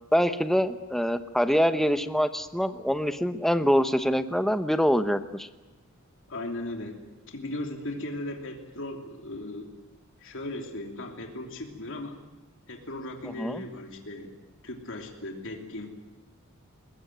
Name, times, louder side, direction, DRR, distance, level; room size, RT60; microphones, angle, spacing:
voice 1, 0.1-5.5 13.2-13.6, equal, ahead, 10 dB, 0.9 m, -25 dB
voice 2, 6.3-7.0 7.3-9.7 10.2-12.2 12.7-14.4 14.6-15.9, left 1 dB, 65° left, 2 dB, 3.1 m, -37 dB
22.0 x 21.0 x 9.3 m, 1.1 s
head